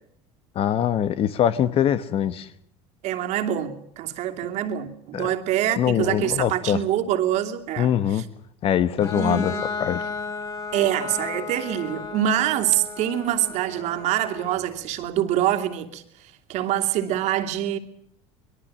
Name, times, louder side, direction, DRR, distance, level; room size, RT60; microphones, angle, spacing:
voice 1, 0.5-2.5 5.1-5.3 5.8-6.8 7.8-8.2 8.6-9.5 9.8-10.0, left 10 dB, 45° left, 1.3 m, -23 dB
voice 2, 3.0-8.2 9.1-9.7 10.7-16.0 16.5-17.8, right 11 dB, 60° right, 2.8 m, -25 dB
Bowed string instrument, 9.0-14.6, left 5 dB, 25° left, 6.0 m, -34 dB
24.5 x 21.5 x 7.6 m
supercardioid pair, 120°, 13 cm